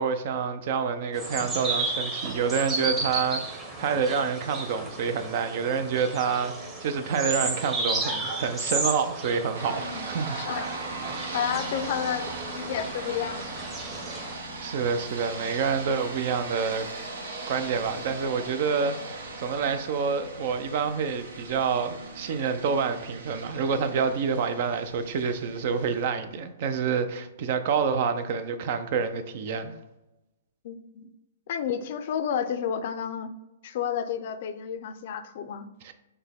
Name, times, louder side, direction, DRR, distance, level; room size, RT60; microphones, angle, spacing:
voice 1, 0.0-10.8 14.6-16.9 17.2-29.7 35.8-35.9, right 6 dB, 50° right, 0.5 m, -28 dB
sound 1, 1.1-14.3, right 2 dB, 15° right, 0.9 m, -33 dB
sound 2, 9.5-26.1, right 3 dB, 75° right, 1.1 m, -39 dB
voice 2, 9.6-10.1 10.3-10.7 11.3-13.4 30.6-31.1 31.5-33.3 33.6-35.7, left 8 dB, 55° left, 0.4 m, -31 dB
5.8 x 2.2 x 3.5 m
hypercardioid pair, 145°, 0 cm